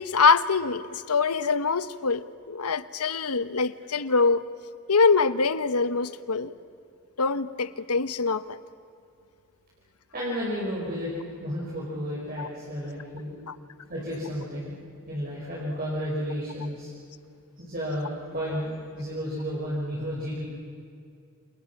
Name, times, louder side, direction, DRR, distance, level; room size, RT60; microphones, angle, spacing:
voice 1, 0.0-4.4 4.9-6.5 7.2-8.6 12.4-12.5 13.5-13.6, left 4 dB, 90° left, 13 dB, 1.1 m, -24 dB
voice 2, 10.1-11.1 11.4-13.3 13.9-14.7 15.1-16.9 17.6-20.5, equal, 40° right, -6 dB, 6.1 m, -32 dB
29.5 x 28.0 x 6.0 m, 2.5 s
head